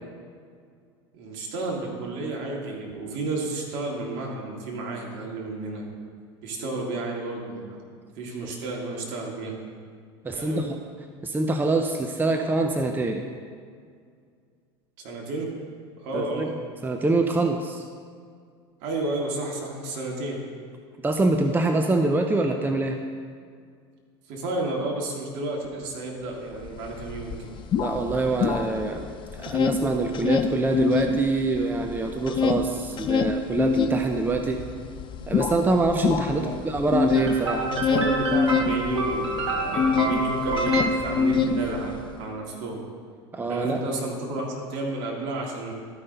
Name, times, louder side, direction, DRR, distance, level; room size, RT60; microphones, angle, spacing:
voice 1, 1.1-5.9 6.4-7.8 8.2-9.5 10.3-10.6 15.0-15.5 16.0-16.5 18.8-20.4 24.3-27.5 36.3-36.5 37.6-42.8 43.5-45.7, right 2 dB, 60° right, -1 dB, 2.1 m, -31 dB
voice 2, 10.2-10.8 11.2-13.2 16.1-16.5 16.8-17.8 21.0-23.0 27.7-29.1 29.3-34.7 35.3-37.7 38.0-38.1 43.3-43.8, right 3 dB, 15° right, 5 dB, 0.6 m, -25 dB
sound 1, 26.7-26.8 27.0-29.0 29.3-31.2 31.5-40.2 40.5-42.0, left 6 dB, 35° left, 0.6 m, -24 dB
sound 2, 37.1-41.8, right 2 dB, 85° right, 1.7 m, -28 dB
12.5 x 5.4 x 4.0 m, 2.1 s
hypercardioid pair, 80°, 14 cm